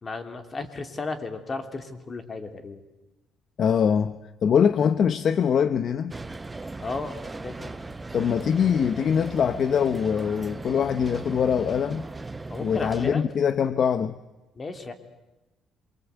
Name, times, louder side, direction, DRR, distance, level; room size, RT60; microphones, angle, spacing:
voice 1, 0.0-2.8 6.8-7.2 7.4-7.6 12.5-13.2 14.6-14.9, left 3 dB, 30° left, 3.0 m, -34 dB
voice 2, 3.6-6.1 8.1-12.0 12.6-14.2, left 7 dB, 50° left, 0.8 m, -23 dB
sound 1, 6.1-13.2, right 3 dB, 15° right, 0.8 m, -38 dB
27.5 x 24.0 x 8.2 m
cardioid pair, 105°, 0 cm